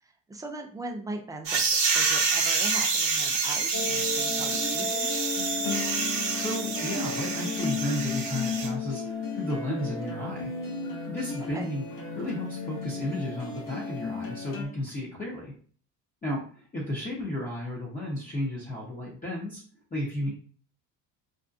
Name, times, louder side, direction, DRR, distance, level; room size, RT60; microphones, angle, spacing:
voice 1, 0.0-5.3 11.5-11.7, right 2 dB, 10° right, 3 dB, 0.3 m, -40 dB
sound 1, 1.5-8.7, right 4 dB, 55° right, 1.0 m, -27 dB
sound 2, 3.7-14.6, left 4 dB, 50° left, 0.9 m, -34 dB
voice 2, 6.4-10.5 11.1-11.8 12.1-15.5 16.2-19.6 19.9-20.3, left 1 dB, 20° left, -5 dB, 0.8 m, -33 dB
2.6 x 2.1 x 2.4 m, 0.43 s
supercardioid pair, 90°, 42 cm